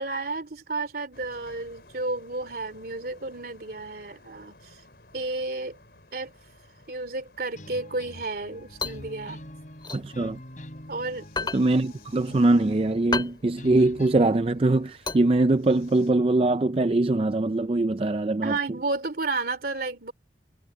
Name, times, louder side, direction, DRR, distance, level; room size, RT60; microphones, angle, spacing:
voice 1, 0.0-4.8 5.1-5.8 6.1-6.3 6.9-9.4 10.9-11.5 18.4-20.1, right 3 dB, 55° right, 2.8 m, -32 dB
sound 1, 1.1-16.1, left 2 dB, 60° left, 5.6 m, -55 dB
sound 2, 7.5-14.4, left 1 dB, 45° left, 5.4 m, -44 dB
sound 3, 8.4-10.9 11.2-15.9, left 4 dB, 25° left, 2.3 m, -34 dB
voice 2, 9.9-10.4 11.5-18.5, right 2 dB, 30° right, 0.5 m, -22 dB
head